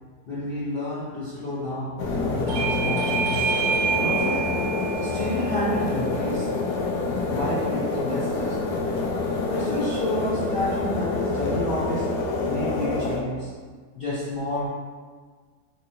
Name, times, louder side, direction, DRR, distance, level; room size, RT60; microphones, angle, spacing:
voice 1, 0.3-4.7 5.0-6.5 7.2-8.8 9.5-12.2 12.5-13.5 13.9-14.7, left 1 dB, 50° left, -10 dB, 0.8 m, -30 dB
sound 1, 2.0-13.2, left 3 dB, 75° left, 1.1 m, -27 dB
Bell / Doorbell, 2.5-7.7, right 6 dB, 65° right, 1.0 m, -29 dB
4.5 x 2.6 x 2.8 m, 1.5 s
omnidirectional pair, 1.8 m